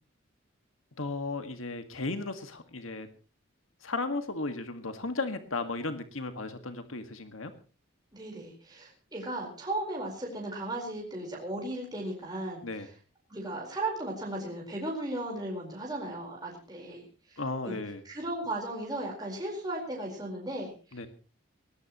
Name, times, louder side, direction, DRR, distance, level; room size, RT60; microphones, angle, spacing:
voice 1, 1.0-3.1 3.8-7.5 12.6-12.9 17.4-18.0 20.9-21.1, left 3 dB, 80° left, 8 dB, 1.9 m, -35 dB
voice 2, 8.1-12.6 13.3-17.7 18.0-21.1, right 1 dB, 20° right, -1 dB, 4.5 m, -36 dB
20.0 x 19.0 x 3.1 m, 0.35 s
head